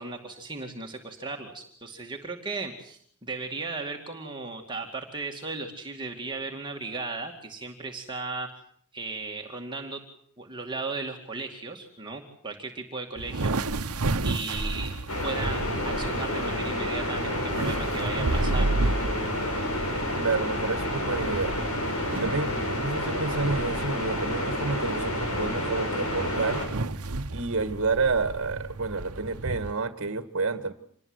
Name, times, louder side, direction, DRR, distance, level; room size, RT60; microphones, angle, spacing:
voice 1, 0.0-8.5 8.9-10.0 10.4-13.8 14.2-14.9 15.2-18.9, right 3 dB, 20° right, 1 dB, 2.4 m, -36 dB
sound 1, 13.2-29.7, right 2 dB, 80° right, 1.1 m, -32 dB
sound 2, 15.1-26.6, left 1 dB, 75° left, 7.4 m, -29 dB
voice 2, 20.2-21.6 22.2-27.0 27.3-30.7, right 4 dB, 60° right, 9 dB, 1.7 m, -29 dB
27.0 x 20.5 x 8.0 m, 0.64 s
head